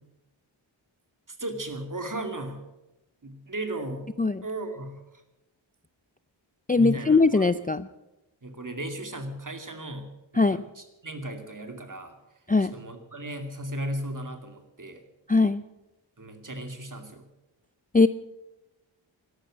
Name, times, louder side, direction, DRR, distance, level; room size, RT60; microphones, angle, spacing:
voice 1, 1.3-2.6 3.2-4.1 4.4-5.0 6.8-7.5 8.4-12.2 12.7-15.0 16.2-17.2, right 1 dB, 40° right, 6 dB, 2.6 m, -36 dB
voice 2, 6.7-7.9 10.4-10.6 12.5-12.7 15.3-15.6 17.9-18.1, left 3 dB, 20° left, 13 dB, 0.4 m, -20 dB
13.0 x 12.0 x 8.6 m, 0.96 s
wide cardioid pair, 70°, 48 cm